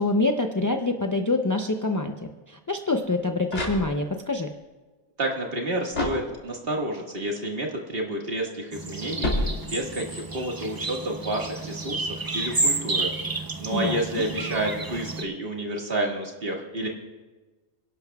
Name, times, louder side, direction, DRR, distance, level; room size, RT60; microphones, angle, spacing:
voice 1, 0.0-4.5 13.7-14.0, left 2 dB, 25° left, 4 dB, 0.4 m, -26 dB
sound 1, 3.1-4.4 5.9-6.8 9.2-10.1, left 1 dB, 75° left, 3.4 m, -30 dB
voice 2, 5.2-16.9, right 1 dB, 50° right, 0 dB, 2.0 m, -30 dB
sound 2, 8.7-15.2, right 3 dB, 25° right, 0.6 m, -31 dB
29.5 x 11.5 x 2.3 m, 1.3 s
omnidirectional pair, 1.2 m